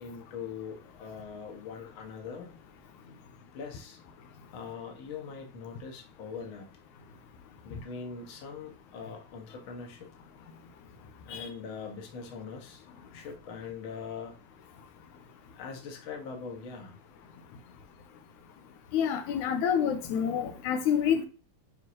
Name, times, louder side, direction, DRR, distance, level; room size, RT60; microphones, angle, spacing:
voice 1, 0.0-2.6 3.5-4.0 4.5-6.7 7.6-10.1 11.3-14.4 15.5-17.0, left 5 dB, 50° left, 1 dB, 1.9 m, -42 dB
voice 2, 18.9-21.3, left 8 dB, 85° left, 6 dB, 2.2 m, -27 dB
9.5 x 4.5 x 2.8 m, 0.35 s
omnidirectional pair, 3.4 m